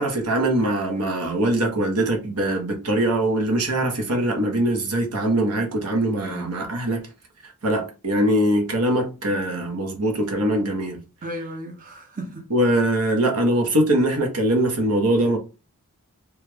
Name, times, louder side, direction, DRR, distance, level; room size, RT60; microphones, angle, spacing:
voice 1, 0.0-7.1 7.6-11.0 12.5-15.4, right 1 dB, 80° right, 0.9 m, -22 dB
voice 2, 11.2-12.5, right 1 dB, 40° right, 0.7 m, -34 dB
3.2 x 2.3 x 3.3 m
head